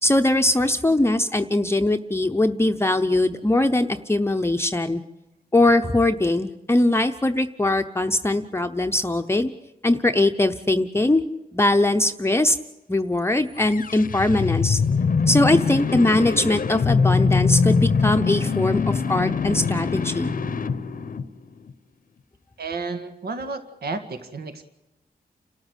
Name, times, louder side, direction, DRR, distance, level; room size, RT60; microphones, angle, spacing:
voice 1, 0.0-5.0 5.5-9.5 9.8-11.2 11.5-12.6 12.9-14.8 15.3-20.3, left 2 dB, 15° left, 6 dB, 0.8 m, -21 dB
sound 1, 13.6-21.7, left 5 dB, 55° left, 0.9 m, -23 dB
voice 2, 22.6-24.7, right 3 dB, 75° right, 7 dB, 1.9 m, -32 dB
30.0 x 13.5 x 8.2 m, 0.95 s
wide cardioid pair, 100°, 16 cm